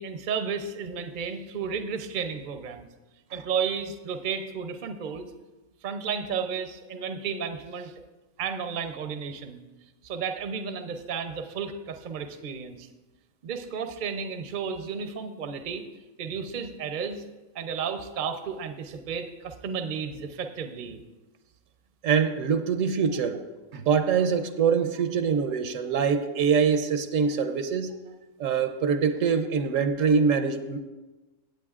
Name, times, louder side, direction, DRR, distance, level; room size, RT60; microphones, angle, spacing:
voice 1, 0.0-2.9 3.3-5.3 5.8-7.9 8.4-9.6 10.0-12.9 13.4-15.8 16.2-17.2 17.5-21.0, right 6 dB, 50° right, 6 dB, 0.7 m, -33 dB
voice 2, 22.0-23.4 23.7-27.9 28.4-30.8, right 6 dB, 75° right, 9 dB, 1.0 m, -24 dB
16.5 x 8.1 x 2.4 m, 1.2 s
omnidirectional pair, 1.4 m